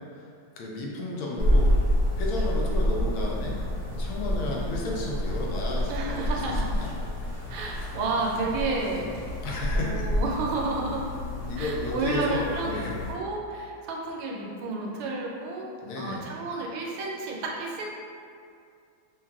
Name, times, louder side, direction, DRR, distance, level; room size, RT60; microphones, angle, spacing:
voice 1, 0.6-1.7 2.1-3.5 4.0-6.9 9.4-10.1 11.4-12.9 15.8-16.3, left 1 dB, 75° left, -3 dB, 1.4 m, -32 dB
sound 1, 1.4-13.1, left 1 dB, 50° left, 1.1 m, -28 dB
voice 2, 5.9-6.7 7.5-9.1 9.7-11.1 11.6-12.8 13.1-15.7 15.9-17.8, right 3 dB, 85° right, -2 dB, 1.5 m, -31 dB
5.7 x 2.3 x 2.3 m, 2.3 s
omnidirectional pair, 2.4 m